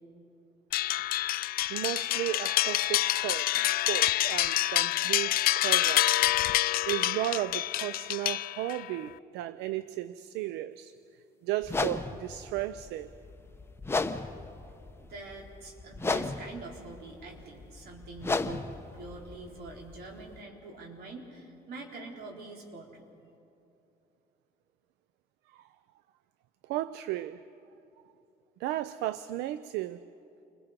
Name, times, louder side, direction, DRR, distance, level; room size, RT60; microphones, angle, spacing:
sound 1, 0.7-8.9, left 15 dB, 60° left, 0.4 m, -27 dB
voice 1, 1.7-6.3 6.9-10.9 11.4-13.1 25.5-25.7 26.6-27.4 28.6-30.0, right 14 dB, 90° right, 0.5 m, -34 dB
sound 2, 11.6-20.4, left 3 dB, 15° left, 0.9 m, -35 dB
voice 2, 15.0-23.1, right 3 dB, 70° right, 4.3 m, -44 dB
29.5 x 21.5 x 5.1 m
cardioid pair, 110°, 17 cm